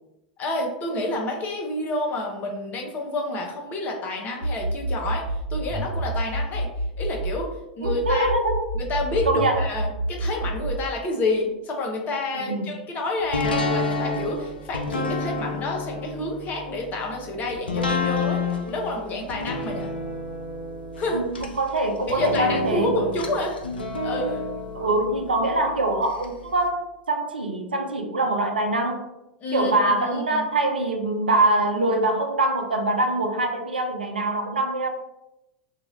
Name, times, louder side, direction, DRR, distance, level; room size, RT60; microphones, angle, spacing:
voice 1, 0.4-6.7 7.0-7.5 7.8-8.3 8.7-19.9 21.0-21.2 22.1-23.6 24.0-24.4 29.4-30.4, left 2 dB, 35° left, 0 dB, 0.8 m, -29 dB
sound 1, 4.4-7.4 7.8-10.9, right 1 dB, 65° left, 1.2 m, -28 dB
voice 2, 7.8-8.7 9.3-9.6 12.5-12.7 21.1-22.9 24.7-26.8 27.1-29.1 29.5-34.9, right 2 dB, 85° right, 4 dB, 0.5 m, -24 dB
sound 2, 13.3-26.3 26.6-26.7, left 3 dB, 80° left, 0.4 m, -30 dB
2.7 x 2.4 x 3.1 m, 0.92 s
figure-of-eight pair, 90°, 5 cm